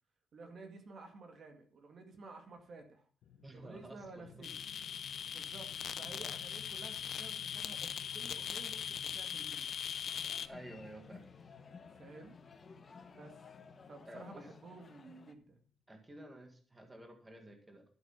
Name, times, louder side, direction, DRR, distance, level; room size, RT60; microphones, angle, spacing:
voice 1, 0.3-3.1 3.5-4.5 5.2-9.7 11.8-12.4 13.1-13.3 13.8-15.6, right 3 dB, 45° right, 5 dB, 2.1 m, -53 dB
sound 1, 3.2-15.4, left 7 dB, 75° left, 1.2 m, -58 dB
voice 2, 3.4-4.5 10.5-11.3 14.1-14.5 15.9-17.8, right 1 dB, 15° right, 4 dB, 2.1 m, -52 dB
sound 2, 4.4-10.5, left 8 dB, 50° left, 0.7 m, -40 dB
sound 3, 10.1-15.3, left 5 dB, 30° left, 1.2 m, -55 dB
12.5 x 7.9 x 5.9 m, 0.41 s
cardioid pair, 170°, 0 cm